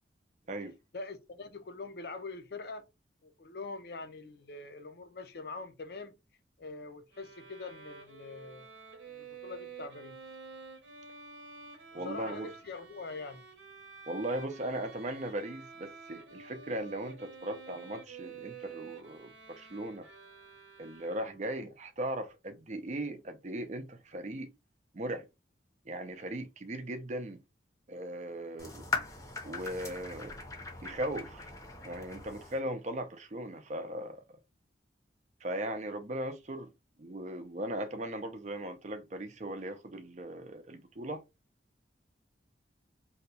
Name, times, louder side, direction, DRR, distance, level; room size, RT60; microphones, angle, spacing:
voice 1, 0.9-2.9 3.2-6.1 6.6-8.7 9.0-10.2 11.9-13.4, left 3 dB, 60° left, 0.5 m, -43 dB
Bowed string instrument, 7.1-21.6, right 5 dB, 90° right, 0.9 m, -50 dB
voice 2, 11.9-12.5 14.1-20.1 20.8-24.5 24.9-25.3 25.9-27.4 27.9-28.9 29.4-30.3 30.8-31.5 31.8-34.2 35.4-36.7 37.0-41.2, right 1 dB, 40° right, 0.5 m, -38 dB
sound 1, 28.6-32.6, left 4 dB, 15° left, 0.6 m, -40 dB
2.8 x 2.2 x 4.0 m
head